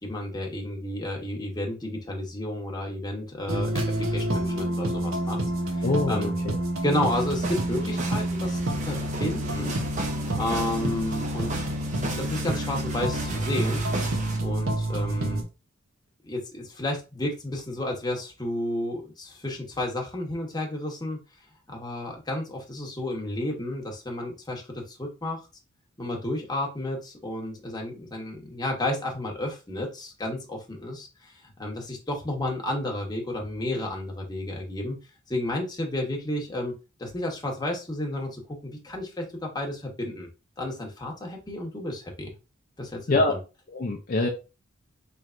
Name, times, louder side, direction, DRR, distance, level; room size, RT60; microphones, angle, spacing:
voice 1, 0.0-3.7 4.1-5.4 5.7-6.4 6.8-9.8 10.3-11.6 12.1-13.8 14.4-15.4 16.2-21.2 21.7-25.4 26.0-35.0 35.3-40.3 40.6-42.3 42.8-43.4, left 1 dB, 20° left, 1 dB, 1.0 m, -32 dB
sound 1, 3.5-15.4, right 1 dB, 80° right, 0.8 m, -28 dB
voice 2, 5.8-6.3 43.1-43.4 43.7-44.3, left 2 dB, 45° left, 1 dB, 0.5 m, -24 dB
sound 2, 7.0-14.4, right 2 dB, 35° right, 0.7 m, -35 dB
4.4 x 3.2 x 2.4 m, 0.30 s
head